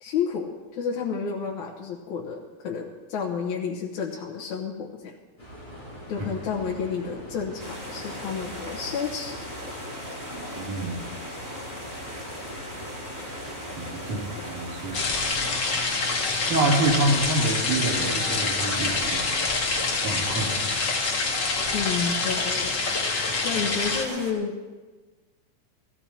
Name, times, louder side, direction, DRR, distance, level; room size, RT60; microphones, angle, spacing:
voice 1, 0.0-5.1 6.1-9.4 21.7-22.8 23.4-24.5, left 6 dB, 75° left, -3 dB, 2.6 m, -30 dB
sound 1, 5.4-15.6, equal, 15° left, 5.7 m, -42 dB
sound 2, 7.6-24.3, equal, 5° right, 2.8 m, -39 dB
voice 2, 10.6-11.0 13.8-15.2 16.5-19.4 20.0-20.6, right 2 dB, 75° right, -5 dB, 4.2 m, -27 dB
sound 3, 14.9-24.0, left 3 dB, 40° left, 1.9 m, -26 dB
16.5 x 14.5 x 4.4 m, 1.3 s
omnidirectional pair, 3.5 m